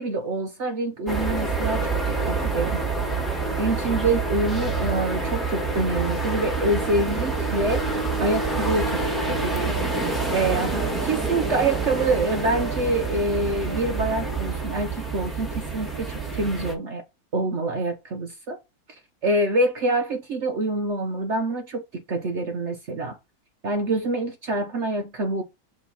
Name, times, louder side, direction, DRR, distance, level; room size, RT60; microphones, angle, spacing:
voice 1, 0.0-1.9 2.2-2.8 3.6-9.8 10.3-17.0 17.3-18.6 18.9-23.2 23.6-25.4, right 2 dB, 55° right, 0.8 m, -26 dB
sound 1, 1.1-16.7, right 3 dB, ahead, 1.3 m, -27 dB
6.3 x 2.9 x 5.3 m
omnidirectional pair, 2.0 m